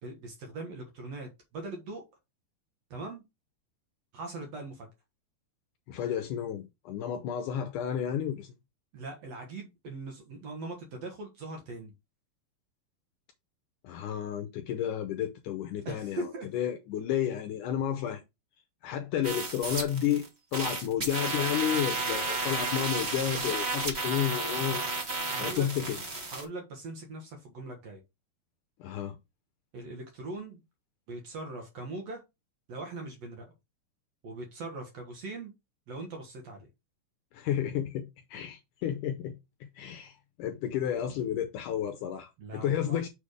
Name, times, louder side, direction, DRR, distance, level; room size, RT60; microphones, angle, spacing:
voice 1, 0.0-2.0 2.9-3.2 4.1-4.9 8.9-11.9 15.9-16.5 25.2-25.7 26.3-28.0 29.7-30.6 31.1-32.2 32.7-33.5 34.2-35.5 35.9-36.7 42.4-43.0, right 2 dB, 60° right, 2.0 m, -40 dB
voice 2, 5.9-8.5 13.8-18.2 18.8-20.2 20.5-24.8 25.4-26.0 28.8-29.2 37.3-39.4 39.8-43.1, left 10 dB, 80° left, 1.9 m, -31 dB
sound 1, 19.2-20.3 20.5-26.4, right 3 dB, 85° right, 0.5 m, -32 dB
6.8 x 3.5 x 4.8 m
omnidirectional pair, 4.3 m